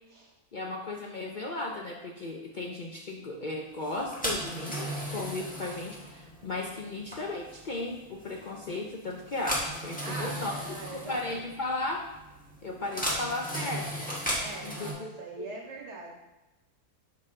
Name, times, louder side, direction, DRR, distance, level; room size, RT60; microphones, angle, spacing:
voice 1, 0.5-10.6 10.9-12.1 12.6-14.1 14.6-15.5, left 2 dB, 60° left, 0 dB, 0.5 m, -36 dB
sound 1, 3.8-14.9, equal, 5° left, 1.3 m, -36 dB
voice 2, 10.0-11.4 14.4-16.2, right 2 dB, 50° right, -1 dB, 1.4 m, -42 dB
6.6 x 5.2 x 3.6 m, 1.0 s
omnidirectional pair, 1.6 m